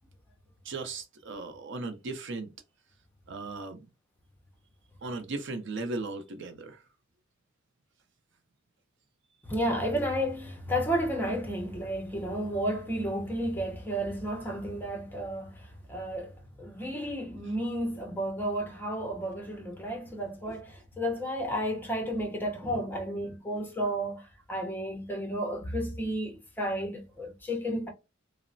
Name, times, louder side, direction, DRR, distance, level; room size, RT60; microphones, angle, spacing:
voice 1, 0.7-2.5 3.3-3.9 5.0-6.8, right 3 dB, 60° right, 0.5 m, -37 dB
voice 2, 9.5-27.9, equal, 10° left, 0.6 m, -32 dB
3.0 x 2.0 x 2.5 m
head